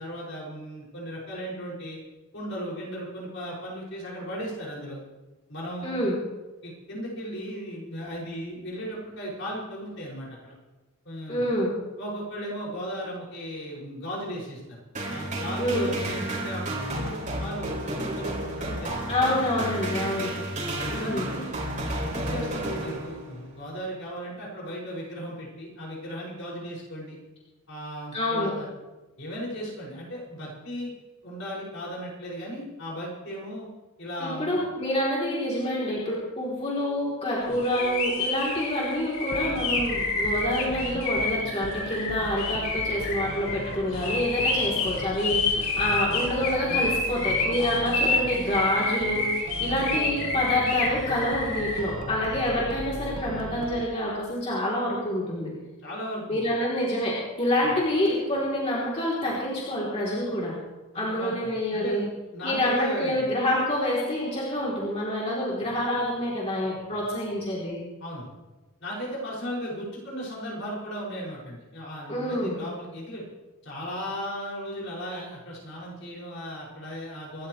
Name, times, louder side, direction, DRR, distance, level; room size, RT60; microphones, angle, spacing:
voice 1, 0.0-2.0 2.3-5.0 5.5-6.0 6.6-10.5 11.0-11.4 12.0-14.6 15.1-19.0 19.3-19.5 20.9-27.2 27.7-28.7 29.2-30.9 31.2-33.7 34.0-34.6 37.5-37.6 49.7-49.8 55.8-56.4 57.6-57.8 60.9-62.1 62.3-63.2 68.0-68.3 68.8-73.2 73.6-77.5, equal, 60° left, -5 dB, 6.3 m, -36 dB
voice 2, 5.8-6.1 11.3-11.7 15.6-15.9 19.1-20.3 20.9-21.3 28.1-28.5 34.2-55.5 56.3-60.5 60.9-62.0 62.4-67.8 72.1-72.6, left 1 dB, 30° left, -5 dB, 3.4 m, -27 dB
sound 1, 14.9-23.4, right 1 dB, 35° right, 4.2 m, -31 dB
sound 2, 37.6-51.9, left 3 dB, 75° left, 4.4 m, -28 dB
sound 3, 39.3-53.9, right 1 dB, 85° right, 1.6 m, -38 dB
26.5 x 13.0 x 3.3 m, 1.1 s
head